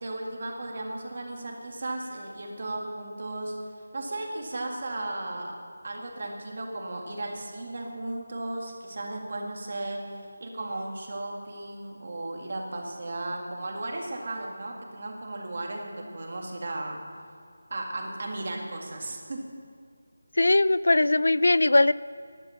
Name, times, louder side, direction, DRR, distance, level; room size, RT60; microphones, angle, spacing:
voice 1, 0.0-3.5 3.9-5.6 5.8-10.0 10.4-17.0 17.7-19.4, right 2 dB, 40° right, 1 dB, 1.9 m, -35 dB
voice 2, 20.4-21.9, left 2 dB, 75° left, 18 dB, 0.3 m, -20 dB
13.0 x 11.5 x 5.7 m, 2.2 s
figure-of-eight pair, 175°, 0 cm